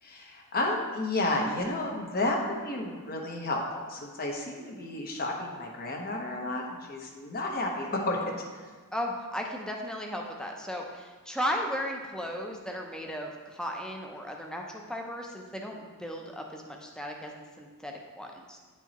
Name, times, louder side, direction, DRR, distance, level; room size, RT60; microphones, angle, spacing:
voice 1, 0.0-3.6 3.9-8.7, left 2 dB, 45° left, 0 dB, 1.0 m, -32 dB
voice 2, 8.9-17.3 17.6-18.6, equal, 5° left, 1 dB, 0.6 m, -35 dB
9.1 x 4.6 x 3.0 m, 1.5 s
head